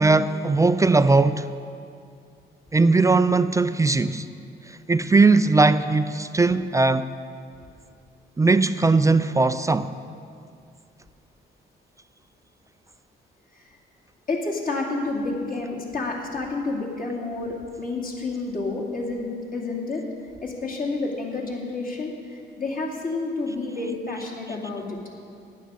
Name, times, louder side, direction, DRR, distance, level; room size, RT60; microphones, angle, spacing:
voice 1, 0.0-1.5 2.7-4.3 4.9-7.1 8.4-9.9, right 3 dB, 15° right, 0.4 m, -19 dB
voice 2, 14.3-20.0 20.4-25.0, left 3 dB, 45° left, 2.6 m, -29 dB
11.0 x 8.9 x 6.9 m
cardioid pair, 90°, 20 cm